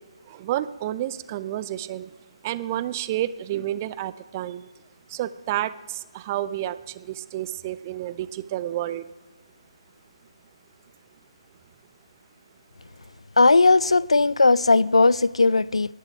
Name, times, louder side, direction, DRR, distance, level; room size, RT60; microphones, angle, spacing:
voice 1, 0.3-2.1 2.4-4.7 5.1-9.1, right 13 dB, 25° right, 0.4 m, -30 dB
voice 2, 13.4-15.9, left 3 dB, 75° left, 0.3 m, -18 dB
18.0 x 10.5 x 5.0 m
figure-of-eight pair, 145°, 3 cm